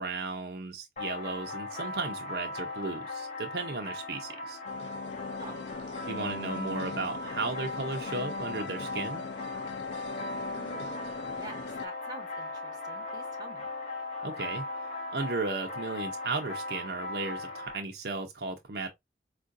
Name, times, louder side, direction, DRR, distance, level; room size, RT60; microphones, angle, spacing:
voice 1, 0.0-4.6 6.1-9.2 14.2-14.7 15.1-18.9, right 3 dB, 60° right, 0.6 m, -35 dB
sound 1, 1.0-17.8, left 2 dB, 40° left, 1.1 m, -38 dB
sound 2, 4.6-11.9, left 3 dB, 75° left, 0.4 m, -40 dB
voice 2, 10.6-13.7, right 2 dB, 20° right, 1.1 m, -47 dB
4.5 x 2.4 x 2.5 m
head